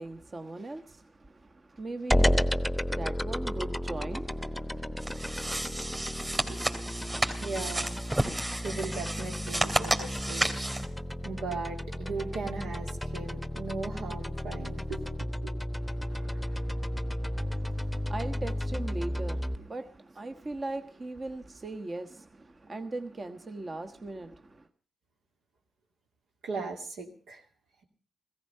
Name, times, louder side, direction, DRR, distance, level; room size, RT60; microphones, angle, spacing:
voice 1, 0.0-4.9 15.8-24.6, right 2 dB, 40° right, 1.3 m, -40 dB
sound 1, 2.1-19.6, equal, ahead, 1.0 m, -32 dB
sound 2, 5.0-10.8, right 1 dB, 20° right, 2.8 m, -32 dB
voice 2, 7.4-8.0 8.6-10.8 11.2-15.5 16.1-16.4 26.4-27.4, right 3 dB, 90° right, 2.6 m, -38 dB
16.5 x 14.5 x 5.5 m
cardioid pair, 65°, 0 cm